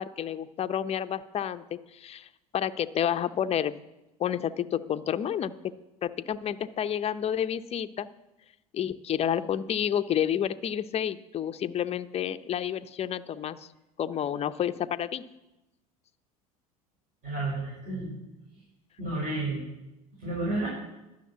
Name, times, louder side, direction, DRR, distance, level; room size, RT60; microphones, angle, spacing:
voice 1, 0.0-3.7 4.2-5.5 6.0-8.1 8.7-13.7 14.0-15.2, left 9 dB, 30° left, 11 dB, 0.6 m, -30 dB
voice 2, 17.2-18.1 19.0-19.6 20.2-20.7, right 2 dB, 40° right, -5 dB, 5.2 m, -31 dB
11.5 x 6.5 x 8.3 m, 0.97 s
hypercardioid pair, 80°, 20 cm